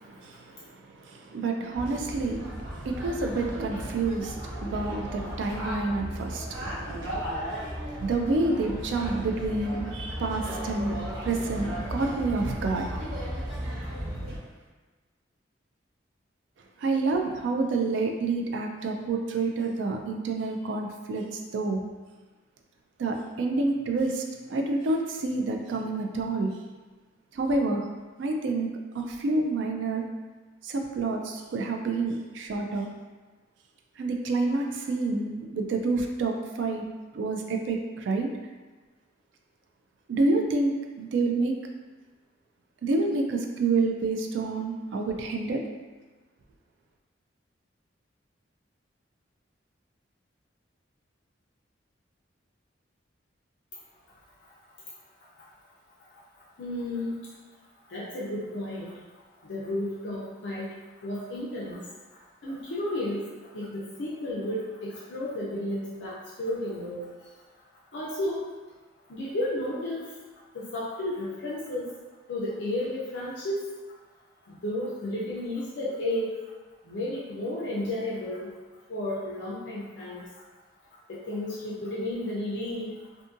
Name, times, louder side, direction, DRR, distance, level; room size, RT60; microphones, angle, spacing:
voice 1, 1.3-2.4 2.8-7.2 8.0-12.9 16.8-21.2 21.5-21.8 23.0-24.2 24.5-26.5 27.4-27.8 28.2-28.7 28.9-30.0 30.6-32.9 34.0-36.8 37.1-38.3 40.1-40.7 41.0-41.5 42.8-45.6, right 3 dB, 75° right, 2 dB, 0.3 m, -28 dB
sound 1, 1.7-14.4, equal, 90° right, 0.9 m, -35 dB
voice 2, 56.6-57.3 57.9-59.0 59.4-60.7 61.0-67.1 67.9-68.5 69.1-70.2 70.5-71.9 72.3-73.6 74.4-76.4 76.8-78.5 78.9-80.4 81.1-82.9, left 1 dB, 65° left, -7 dB, 0.5 m, -33 dB
2.6 x 2.6 x 2.5 m, 1.3 s
head